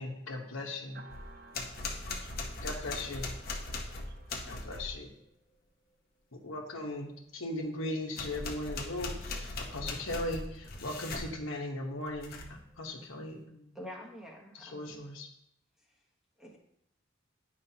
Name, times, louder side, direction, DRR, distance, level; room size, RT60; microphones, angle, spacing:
voice 1, 0.0-1.0 2.6-3.3 4.5-5.1 6.4-13.7 14.5-15.3, left 1 dB, 85° left, 1.2 m, -38 dB
voice 2, 0.9-2.7 3.4-4.9, right 3 dB, 50° right, 0.6 m, -55 dB
sound 1, 1.1-5.0 8.1-11.3 12.1-12.6, left 2 dB, 45° left, 0.9 m, -39 dB
voice 3, 13.7-15.1 16.4-16.6, equal, ahead, 1.0 m, -47 dB
10.0 x 5.0 x 2.8 m
head